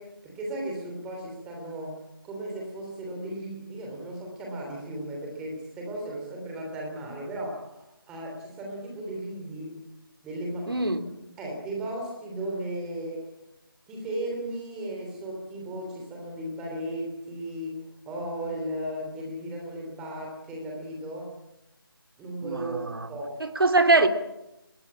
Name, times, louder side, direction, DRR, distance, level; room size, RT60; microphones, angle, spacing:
voice 1, 0.0-9.8 10.2-10.9 11.4-13.3 13.9-21.3 22.2-23.3, right 1 dB, 5° right, 0 dB, 3.1 m, -36 dB
voice 2, 10.7-11.0 22.4-23.1 23.4-24.1, right 3 dB, 75° right, 7 dB, 2.9 m, -23 dB
21.0 x 20.5 x 8.7 m, 0.90 s
figure-of-eight pair, 170°, 12 cm